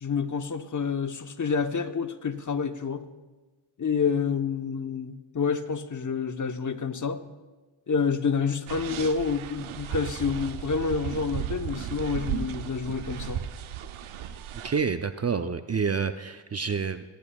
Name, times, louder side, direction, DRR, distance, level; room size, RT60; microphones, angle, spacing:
voice 1, 0.0-3.0 3.8-7.2 7.9-13.4, left 5 dB, 40° left, 8 dB, 0.9 m, -28 dB
sound 1, 8.7-14.8, right 10 dB, 80° right, 0.7 m, -35 dB
voice 2, 14.6-17.0, right 5 dB, 35° right, 10 dB, 0.5 m, -28 dB
21.0 x 10.5 x 2.3 m, 1.2 s
cardioid pair, 55°, 48 cm